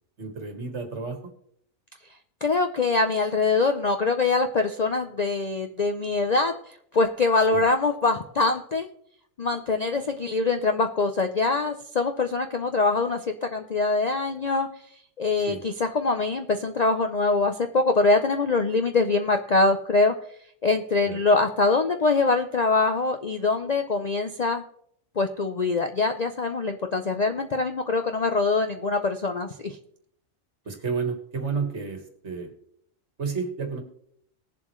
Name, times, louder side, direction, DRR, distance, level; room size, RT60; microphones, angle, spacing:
voice 1, 0.2-1.3 7.5-7.6 15.5-15.6 21.0-21.2 30.7-32.5 33.2-33.8, right 5 dB, 55° right, 5 dB, 1.9 m, -31 dB
voice 2, 2.4-8.9 9.4-14.7 15.2-20.1 20.6-24.6 25.2-29.8, left 3 dB, 45° left, 6 dB, 0.5 m, -24 dB
19.0 x 7.4 x 3.1 m, 0.67 s
omnidirectional pair, 1.4 m